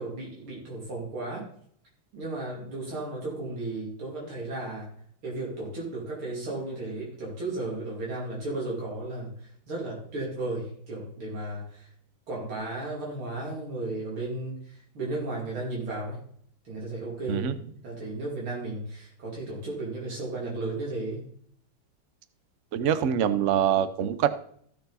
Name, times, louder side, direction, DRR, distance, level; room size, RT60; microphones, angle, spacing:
voice 1, 0.0-1.5 2.1-4.9 5.2-9.3 9.7-11.9 12.3-16.2 16.7-17.5 17.8-21.2, right 2 dB, 85° right, -4 dB, 3.6 m, -34 dB
voice 2, 22.7-24.3, right 9 dB, 70° right, 12 dB, 0.7 m, -24 dB
15.0 x 6.5 x 4.1 m, 0.62 s
omnidirectional pair, 2.3 m